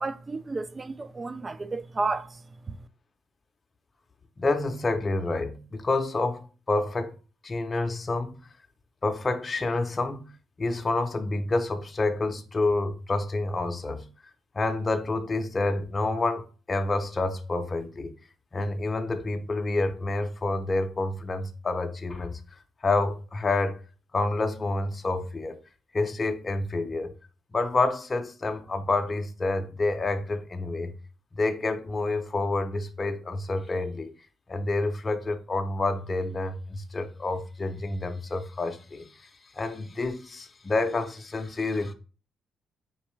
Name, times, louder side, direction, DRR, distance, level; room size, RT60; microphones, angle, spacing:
voice 1, 0.0-2.3, right 3 dB, 25° right, 0.4 m, -31 dB
voice 2, 4.4-7.1 7.4-8.4 9.0-10.3 10.6-14.1 14.5-18.1 18.5-22.4 22.8-23.8 24.1-25.6 25.9-27.1 27.5-30.9 31.3-34.1 34.5-41.9, left 2 dB, 30° left, 0.6 m, -28 dB
4.4 x 3.2 x 3.1 m
cardioid pair, 90°, 0 cm